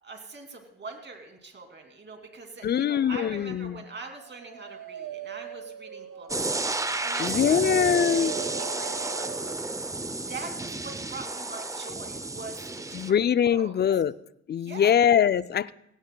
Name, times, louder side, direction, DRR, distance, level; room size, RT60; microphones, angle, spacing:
voice 1, 0.0-9.3 10.3-13.1 13.4-13.7 14.5-15.1, right 3 dB, 35° right, 2.6 m, -43 dB
voice 2, 2.6-3.8 7.2-8.3 12.9-14.1 14.5-15.7, left 9 dB, 35° left, 0.4 m, -23 dB
Dog, 4.0-9.6, right 12 dB, 75° right, 0.7 m, -39 dB
sound 1, 6.3-13.1, right 2 dB, 10° right, 0.6 m, -32 dB
17.0 x 17.0 x 2.3 m
cardioid pair, 90°, 30 cm